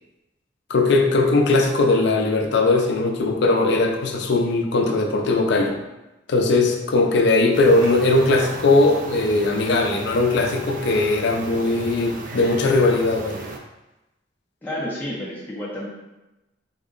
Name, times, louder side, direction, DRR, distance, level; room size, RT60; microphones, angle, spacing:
voice 1, 0.7-5.8 6.3-13.4, left 2 dB, 65° left, 3 dB, 0.5 m, -19 dB
sound 1, 7.5-13.6, right 2 dB, 45° right, 0.4 m, -35 dB
voice 2, 14.6-15.9, left 1 dB, 10° left, -8 dB, 0.5 m, -30 dB
3.7 x 2.1 x 3.7 m, 1.0 s
head